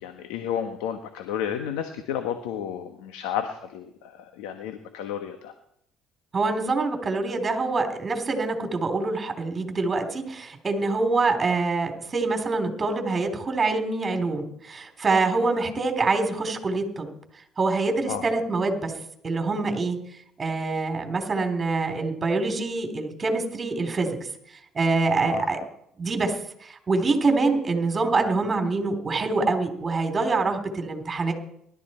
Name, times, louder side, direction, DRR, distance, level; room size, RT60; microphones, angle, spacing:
voice 1, 0.0-5.5 18.1-18.2 25.2-25.5, left 9 dB, 90° left, 7 dB, 1.3 m, -32 dB
voice 2, 6.3-17.1 17.6-18.9 19.2-20.0 20.4-24.2 24.7-25.6 26.0-26.4 26.6-31.3, right 3 dB, 30° right, 5 dB, 3.7 m, -25 dB
20.0 x 12.5 x 4.5 m, 0.73 s
supercardioid pair, 80°, 0 cm